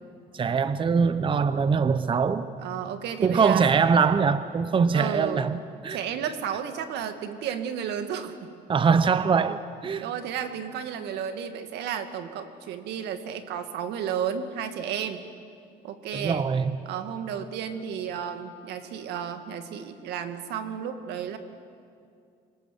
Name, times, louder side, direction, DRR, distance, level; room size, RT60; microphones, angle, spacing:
voice 1, 0.3-2.5 3.2-6.0 8.7-10.0 16.1-16.8, right 5 dB, 30° right, 13 dB, 0.8 m, -23 dB
voice 2, 2.6-3.6 4.9-5.5 5.9-8.5 10.0-15.2 15.8-16.5 16.9-21.4, right 8 dB, 80° right, 8 dB, 2.1 m, -32 dB
26.5 x 25.5 x 7.6 m, 2.4 s
cardioid pair, 110°, 17 cm